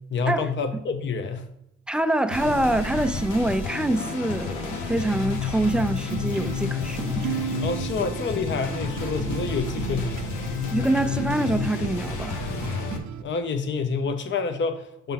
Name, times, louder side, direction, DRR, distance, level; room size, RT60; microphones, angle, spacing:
voice 1, 0.1-1.5 7.6-10.3 13.2-15.1, left 5 dB, 40° left, 0.7 m, -28 dB
voice 2, 1.9-7.3 10.7-12.5, right 1 dB, 5° right, 0.3 m, -25 dB
sound 1, 2.3-13.0, left 5 dB, 80° left, 1.2 m, -31 dB
sound 2, 6.0-13.2, right 9 dB, 70° right, 0.6 m, -35 dB
5.6 x 3.6 x 5.8 m
cardioid pair, 90°, 30 cm